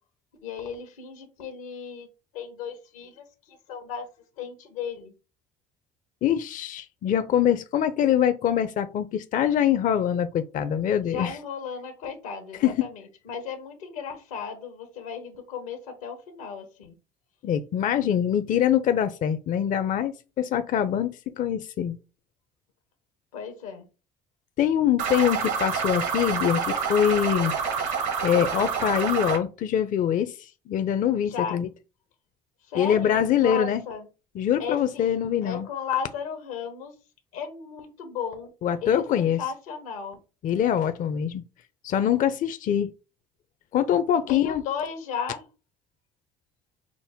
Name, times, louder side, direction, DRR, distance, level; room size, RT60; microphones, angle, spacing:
voice 1, 0.4-2.1 2.3-4.1 4.4-5.1 11.0-16.9 23.3-23.9 31.2-31.6 32.7-34.1 34.6-35.2 35.4-36.9 37.3-38.5 38.8-40.2 44.3-45.5, left 6 dB, 90° left, 1.1 m, -35 dB
voice 2, 6.2-11.3 12.6-12.8 17.4-22.0 24.6-27.5 27.8-27.9 28.2-31.7 32.7-33.8 34.4-35.7 38.6-39.4 40.4-41.4 41.8-42.9 43.7-44.6, left 9 dB, 50° left, 0.5 m, -24 dB
sound 1, 25.0-29.4, right 6 dB, 80° right, 1.5 m, -27 dB
6.0 x 2.1 x 3.5 m
hypercardioid pair, 70°, 18 cm